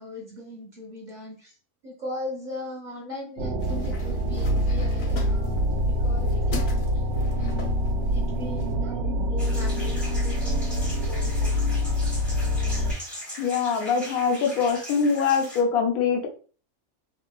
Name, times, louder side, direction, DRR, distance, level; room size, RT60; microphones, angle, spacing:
voice 1, 0.0-1.6 1.8-6.9 7.3-7.7 8.1-11.8, left 1 dB, 40° right, -2 dB, 0.7 m, -39 dB
sound 1, 3.4-12.9, equal, 80° right, 1.0 m, -25 dB
sound 2, 3.6-8.7, left 5 dB, 60° left, 0.7 m, -42 dB
sound 3, 9.4-15.6, equal, ahead, 0.6 m, -40 dB
voice 2, 13.4-16.3, left 5 dB, 85° left, 3 dB, 1.1 m, -23 dB
3.6 x 2.2 x 2.2 m, 0.39 s
omnidirectional pair, 1.5 m